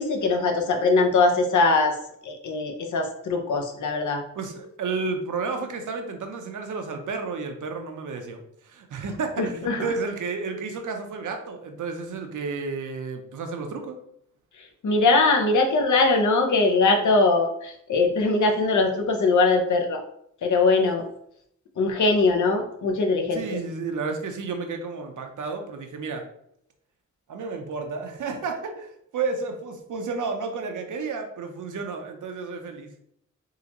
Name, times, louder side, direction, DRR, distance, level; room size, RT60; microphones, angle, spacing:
voice 1, 0.0-1.9 2.2-4.2 9.4-9.8 14.8-20.0 20.4-21.0 21.8-23.4, left 3 dB, 75° left, 4 dB, 0.7 m, -21 dB
voice 2, 4.4-14.0 23.3-26.2 27.3-32.9, right 4 dB, 80° right, 5 dB, 0.7 m, -32 dB
3.8 x 3.0 x 2.9 m, 0.71 s
cardioid pair, 75°, 30 cm